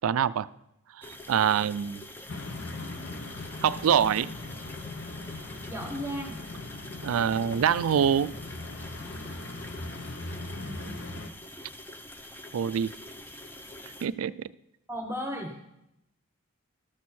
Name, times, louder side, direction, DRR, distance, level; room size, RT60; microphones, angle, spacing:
voice 1, 0.0-0.5 1.0-2.0 3.6-4.3 7.0-8.3 12.5-12.9 14.0-14.3, right 8 dB, 80° right, 17 dB, 0.3 m, -25 dB
sound 1, 1.0-14.1, left 1 dB, 10° left, 0.5 m, -45 dB
sound 2, 2.3-11.3, left 2 dB, 55° left, 0.8 m, -40 dB
voice 2, 5.7-6.4 10.6-11.4 14.9-15.5, equal, 10° right, 3 dB, 1.0 m, -36 dB
13.0 x 6.3 x 4.3 m, 0.83 s
head